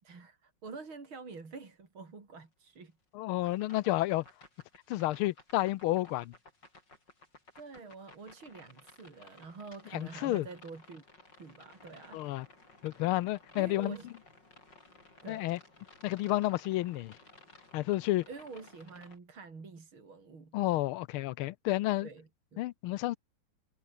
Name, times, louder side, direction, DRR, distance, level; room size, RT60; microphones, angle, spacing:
voice 1, 0.0-2.9 7.6-11.0 11.4-12.2 13.5-14.1 15.2-15.5 18.3-20.6 22.0-22.6, right 4 dB, 70° right, 4.8 m, -47 dB
voice 2, 3.1-4.2 4.9-6.3 9.9-10.5 12.1-12.5 12.8-14.0 15.3-15.6 16.0-17.2 17.7-18.3 20.5-22.1 22.6-23.2, left 16 dB, 80° left, 1.5 m, -31 dB
sound 1, 3.4-19.2, left 2 dB, 55° left, 7.5 m, -57 dB
omnidirectional pair, 2.3 m